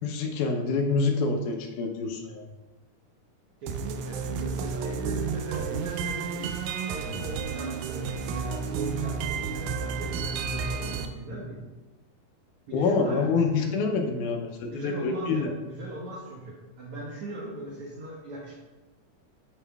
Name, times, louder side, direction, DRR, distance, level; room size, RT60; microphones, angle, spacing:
voice 1, 0.0-2.4 12.7-15.5, left 4 dB, 80° left, 3 dB, 2.2 m, -26 dB
voice 2, 3.6-11.6 12.7-13.8 14.7-18.6, right 2 dB, 65° right, -6 dB, 1.6 m, -39 dB
sound 1, 3.7-11.1, right 5 dB, 80° right, 1.7 m, -31 dB
8.9 x 4.8 x 2.3 m, 1.2 s
omnidirectional pair, 3.6 m